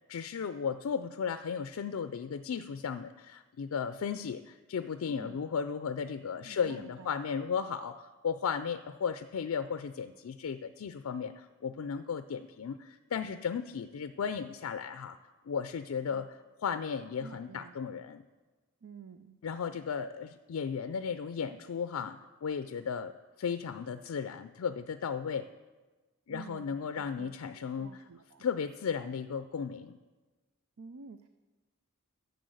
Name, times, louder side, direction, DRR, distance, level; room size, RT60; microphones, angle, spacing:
voice 1, 0.1-15.2 15.5-18.2 19.4-23.1 23.4-25.5 26.3-28.0 28.4-30.0, left 6 dB, 80° left, 11 dB, 0.4 m, -35 dB
voice 2, 5.1-5.4 6.4-7.1 16.1-16.3 17.2-17.7 18.8-19.4 26.3-28.5 30.8-31.3, right 5 dB, 80° right, 9 dB, 0.5 m, -50 dB
10.0 x 6.8 x 7.8 m, 1.3 s
head